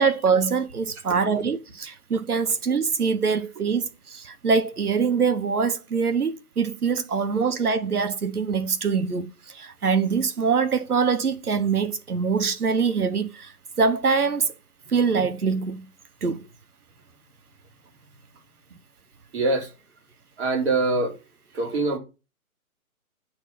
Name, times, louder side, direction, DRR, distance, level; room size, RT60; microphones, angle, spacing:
voice 1, 0.0-14.5 14.9-15.9 16.2-16.5, right 5 dB, 85° right, 1.1 m, -24 dB
voice 2, 19.3-19.7 20.4-21.2 21.5-22.0, right 3 dB, 45° right, 4.0 m, -23 dB
8.9 x 4.5 x 6.0 m
figure-of-eight pair, 140°, 44 cm